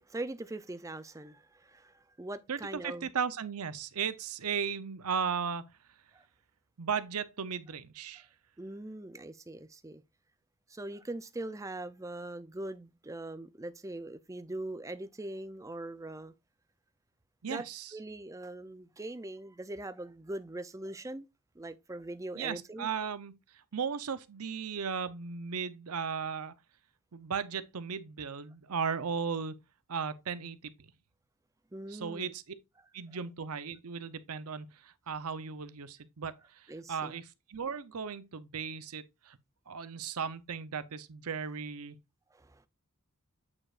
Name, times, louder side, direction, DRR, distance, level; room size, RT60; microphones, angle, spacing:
voice 1, 0.0-3.1 6.1-6.3 8.6-10.0 10.7-16.3 17.5-17.7 17.9-21.3 21.6-22.9 31.7-32.3 36.7-37.2 42.3-42.6, right 2 dB, 15° right, 0.5 m, -41 dB
voice 2, 2.5-5.6 6.8-8.3 17.4-17.9 22.3-23.3 23.7-26.5 27.1-29.6 29.9-30.7 31.9-32.4 32.9-39.4 39.7-42.0, right 6 dB, 90° right, 0.7 m, -36 dB
8.5 x 5.0 x 2.5 m
head